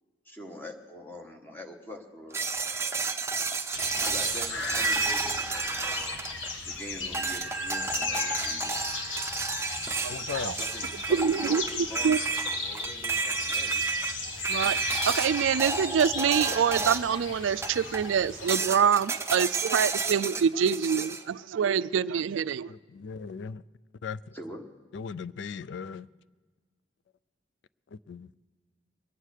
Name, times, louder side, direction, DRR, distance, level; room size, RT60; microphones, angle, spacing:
voice 1, 0.2-2.4 4.0-6.2 6.6-8.8 10.6-12.1 12.6-13.9 24.3-24.7, left 1 dB, 10° left, 1.3 m, -44 dB
sound 1, 2.3-6.7 7.1-17.2 17.6-18.1 18.5-21.2, right 4 dB, 15° right, 0.6 m, -31 dB
sound 2, 3.7-18.5, left 3 dB, 80° left, 1.7 m, -36 dB
voice 2, 10.1-10.5 22.7-23.6 24.0-24.3 24.9-26.1 27.9-28.4, left 6 dB, 65° left, 0.4 m, -38 dB
voice 3, 11.1-11.6 12.0-12.2 14.5-14.8 15.1-22.7, right 7 dB, 80° right, 0.4 m, -25 dB
22.0 x 9.1 x 6.5 m
head